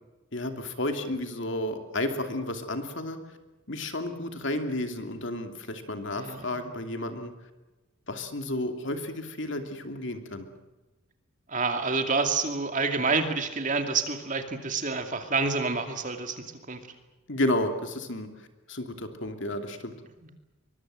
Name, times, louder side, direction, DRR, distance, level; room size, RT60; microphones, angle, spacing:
voice 1, 0.3-3.2 3.7-7.3 8.1-10.5 17.3-18.3 18.7-19.9, left 1 dB, 55° left, 6 dB, 2.8 m, -32 dB
voice 2, 6.1-6.6 11.5-16.8 20.2-20.3, right 4 dB, 35° right, 6 dB, 2.5 m, -28 dB
24.0 x 22.5 x 7.7 m, 1.1 s
head